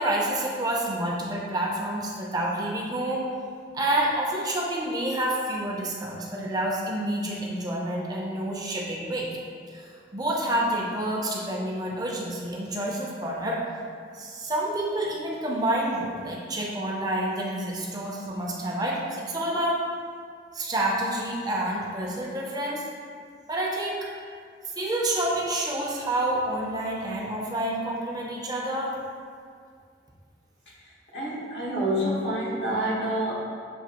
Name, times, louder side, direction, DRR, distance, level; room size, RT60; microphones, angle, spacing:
voice 1, 0.0-3.3 3.7-9.3 9.7-13.6 14.1-19.8 20.5-22.8 23.5-24.1 24.8-29.0, right 1 dB, 20° right, -3 dB, 0.5 m, -28 dB
voice 2, 31.1-33.4, right 1 dB, 80° left, -6 dB, 1.3 m, -27 dB
6.9 x 2.6 x 2.9 m, 2.2 s
head